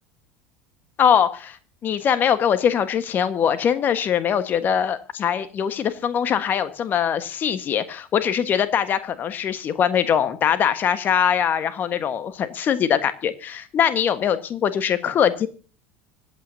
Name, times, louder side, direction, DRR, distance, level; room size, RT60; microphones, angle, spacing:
voice 1, 1.0-1.6 1.8-15.5, left 8 dB, 40° left, 11 dB, 1.5 m, -22 dB
25.0 x 8.9 x 2.8 m, 0.38 s
figure-of-eight pair, 75°, 5 cm